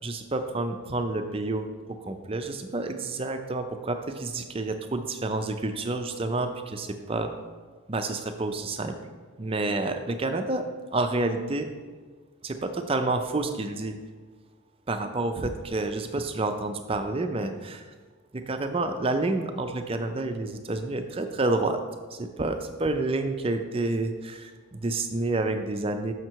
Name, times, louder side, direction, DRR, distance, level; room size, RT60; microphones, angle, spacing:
voice 1, 0.0-7.3 7.9-9.0 9.4-10.7 10.9-11.7 12.4-14.0 14.9-17.8 18.3-21.8 22.1-26.1, right 2 dB, 25° right, 7 dB, 0.5 m, -29 dB
6.4 x 6.4 x 4.6 m, 1.4 s
head